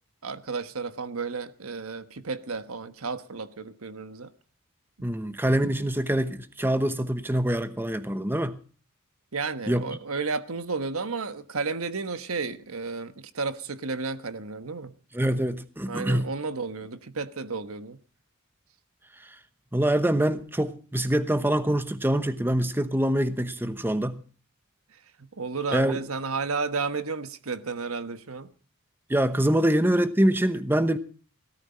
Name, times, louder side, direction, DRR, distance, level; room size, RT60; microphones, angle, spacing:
voice 1, 0.2-4.3 9.3-14.9 15.8-18.0 25.2-28.5, right 4 dB, 80° right, 1.2 m, -32 dB
voice 2, 5.0-8.6 9.7-9.8 15.1-16.3 19.7-24.2 25.7-26.0 29.1-31.0, right 1 dB, 10° right, 0.9 m, -25 dB
17.5 x 13.5 x 4.3 m
head